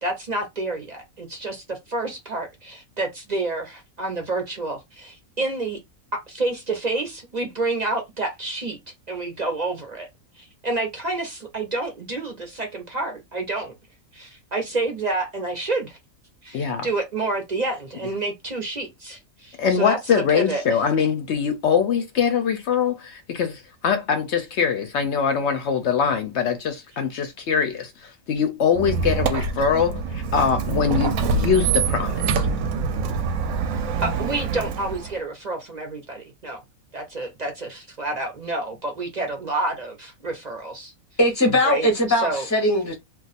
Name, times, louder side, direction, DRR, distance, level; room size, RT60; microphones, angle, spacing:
voice 1, 0.0-5.8 6.3-8.8 9.1-10.1 10.4-13.7 14.1-16.0 16.4-20.0 20.3-20.8 34.0-36.6 36.9-40.9 41.6-42.5, right 2 dB, 40° right, 0.6 m, -29 dB
voice 2, 16.5-16.9 19.6-32.5, left 7 dB, 65° left, 0.7 m, -23 dB
Squeak, 28.7-35.2, right 5 dB, 75° right, 1.0 m, -25 dB
voice 3, 41.2-42.9, left 1 dB, 20° left, 0.5 m, -20 dB
2.4 x 2.3 x 4.0 m
omnidirectional pair, 1.5 m